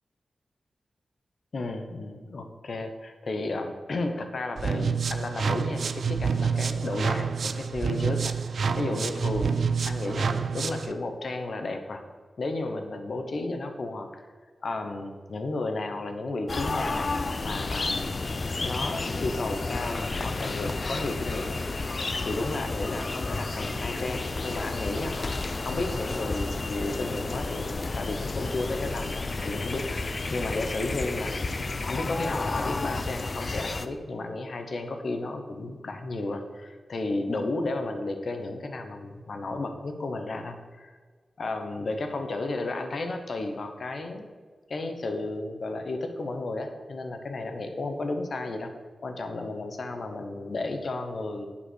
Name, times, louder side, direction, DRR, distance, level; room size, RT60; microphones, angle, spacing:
voice 1, 1.5-12.0 12.4-14.3 14.6-17.1 17.4-18.2 18.6-21.6 22.2-25.2 25.6-31.5 31.9-41.0 41.4-44.3 44.7-48.7 49.0-51.4, left 2 dB, 60° left, 6 dB, 1.0 m, -33 dB
sound 1, 4.6-10.9, right 6 dB, 70° right, 0.4 m, -28 dB
sound 2, 16.5-33.9, left 3 dB, 40° left, 0.5 m, -31 dB
8.6 x 5.1 x 6.3 m, 1.5 s
wide cardioid pair, 105°, 0 cm